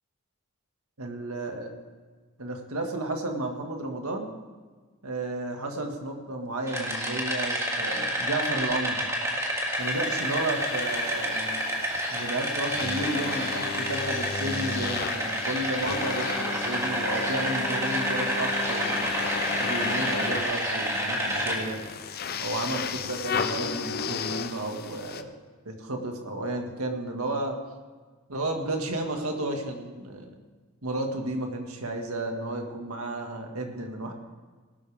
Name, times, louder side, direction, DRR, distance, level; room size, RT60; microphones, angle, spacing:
voice 1, 1.0-1.7 2.4-4.3 5.0-9.1 9.8-11.6 12.1-19.0 19.6-21.8 22.4-25.3 25.7-27.6 28.3-30.3 30.8-34.1, right 2 dB, 85° right, 3 dB, 1.9 m, -32 dB
sound 1, 6.7-21.6, equal, 15° right, 2.3 m, -29 dB
sound 2, 9.8-25.2, left 6 dB, 45° left, 0.6 m, -34 dB
18.0 x 12.5 x 3.5 m, 1.4 s
head